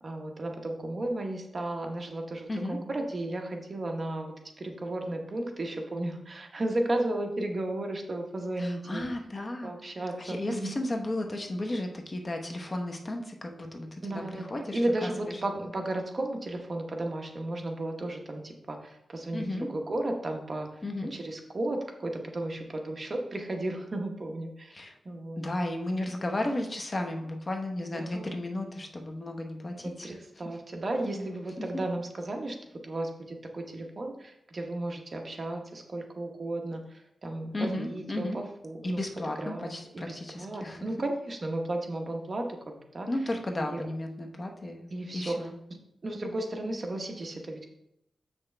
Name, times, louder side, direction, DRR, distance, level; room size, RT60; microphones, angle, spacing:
voice 1, 0.0-9.1 9.6-10.8 14.0-25.4 27.9-28.4 30.0-32.6 32.8-39.0 39.4-43.1 43.7-43.9 44.9-45.5 46.0-47.6, right 1 dB, 40° right, 3 dB, 1.0 m, -34 dB
voice 2, 8.6-9.7 10.2-15.4 19.3-19.7 20.8-21.1 24.7-25.0 25.4-30.1 31.1-31.3 37.5-38.4 38.8-40.8 43.1-44.9 45.1-45.5, left 1 dB, 35° left, 3 dB, 0.9 m, -34 dB
7.6 x 5.9 x 3.3 m, 0.80 s
wide cardioid pair, 105°, 0 cm